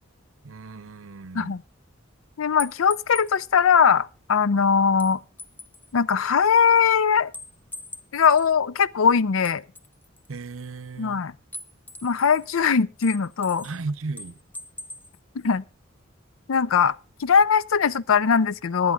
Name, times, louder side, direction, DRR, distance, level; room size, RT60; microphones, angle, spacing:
voice 1, 0.4-1.6 10.3-11.2 13.6-14.4, right 3 dB, 80° right, 0.7 m, -35 dB
voice 2, 2.4-5.2 5.9-7.3 8.1-9.6 11.0-11.3 12.0-13.7 15.4-15.6 16.5-16.9 17.2-18.9, left 6 dB, 85° left, 0.5 m, -20 dB
sound 1, 2.6-3.4 5.0-5.9 7.3-8.5 9.4-10.4 11.5-12.6 13.0-13.8 14.2-15.1, left 2 dB, 10° left, 0.7 m, -40 dB
24.0 x 10.5 x 2.4 m
head